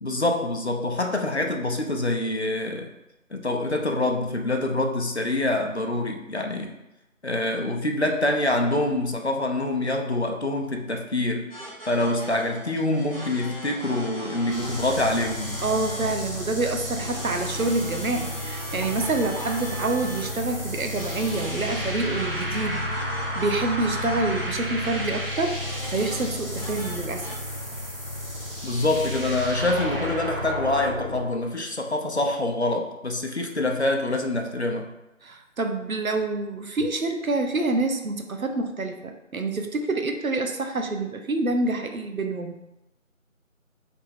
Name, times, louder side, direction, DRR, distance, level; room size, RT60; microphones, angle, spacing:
voice 1, 0.0-2.9 3.3-6.7 7.2-11.5 11.8-15.6 28.6-34.9, left 2 dB, 55° left, 3 dB, 0.6 m, -25 dB
sound 1, 11.5-27.3, right 1 dB, 25° left, 1.5 m, -40 dB
Chicken rooster, 12.0-16.4 16.6-22.3, equal, 5° right, 0.3 m, -45 dB
sound 2, 14.5-31.2, equal, 45° right, 0.7 m, -32 dB
voice 2, 15.6-22.8 23.4-27.3 35.2-42.6, right 2 dB, 85° right, 5 dB, 0.7 m, -27 dB
3.4 x 3.1 x 4.2 m, 0.95 s
figure-of-eight pair, 175°, 41 cm